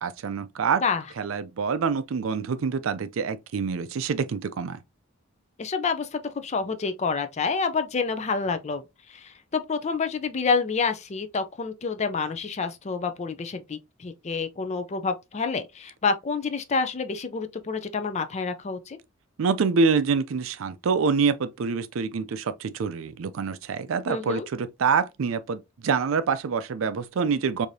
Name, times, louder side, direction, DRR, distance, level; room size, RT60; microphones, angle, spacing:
voice 1, 0.0-0.8 1.2-4.8 19.4-27.7, right 5 dB, 75° right, 0.4 m, -26 dB
voice 2, 5.6-8.8 9.1-19.0 24.1-24.5, left 4 dB, 35° left, 0.4 m, -28 dB
4.7 x 2.7 x 2.6 m
head